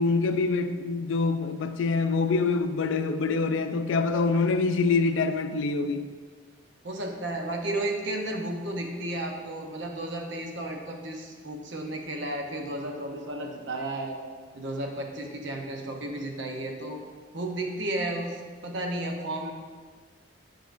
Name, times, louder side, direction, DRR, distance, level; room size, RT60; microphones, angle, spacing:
voice 1, 0.0-6.1, left 4 dB, 85° left, 0.4 m, -25 dB
voice 2, 6.8-14.2 14.5-17.0 17.3-19.5, right 1 dB, 70° right, 0.8 m, -33 dB
9.1 x 4.5 x 2.5 m
head